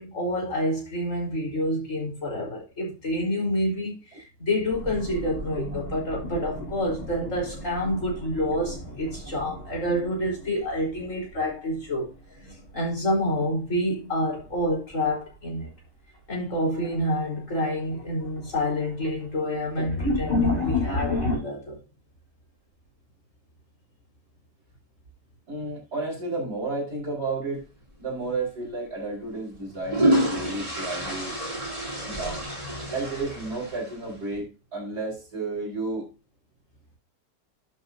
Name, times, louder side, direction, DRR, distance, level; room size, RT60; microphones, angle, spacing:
voice 1, 0.0-12.1 12.7-15.7 16.3-21.8, left 1 dB, 45° left, 5.0 m, -28 dB
sound 1, 4.7-11.5 11.8-12.7 14.4-14.7 15.3-15.4 16.3-16.4 16.8-17.3 17.7-21.4, left 2 dB, 10° left, 4.6 m, -32 dB
voice 2, 25.5-27.6 28.0-31.4 32.0-32.4 32.9-36.1, right 3 dB, 60° right, 5.7 m, -32 dB
sound 2, 28.2-28.4 29.5-34.1, right 1 dB, 20° right, 4.3 m, -28 dB
11.0 x 7.8 x 2.8 m
omnidirectional pair, 1.8 m